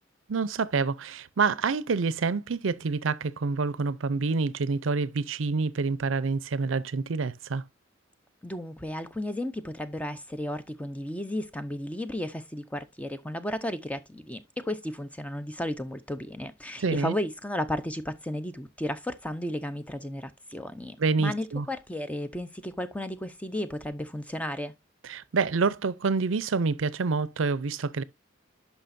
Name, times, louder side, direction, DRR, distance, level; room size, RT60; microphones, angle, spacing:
voice 1, 0.3-7.6 16.8-17.2 21.0-21.7 25.0-28.0, right 4 dB, 75° right, 0.5 m, -27 dB
voice 2, 8.4-24.7, left 1 dB, 5° left, 0.6 m, -34 dB
10.0 x 5.7 x 2.6 m
head